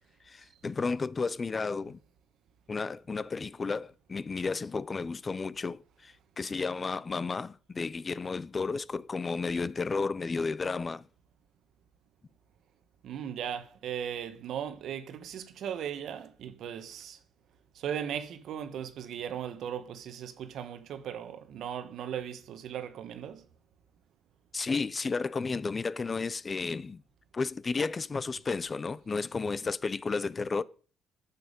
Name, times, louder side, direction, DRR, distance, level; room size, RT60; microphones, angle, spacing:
voice 1, 0.2-2.0 2.7-11.1 24.5-27.0 27.3-30.6, left 4 dB, 30° left, 0.4 m, -32 dB
voice 2, 13.0-17.2 17.7-23.4, right 9 dB, 70° right, 1.1 m, -37 dB
11.0 x 7.1 x 5.1 m
cardioid pair, 110°, 0 cm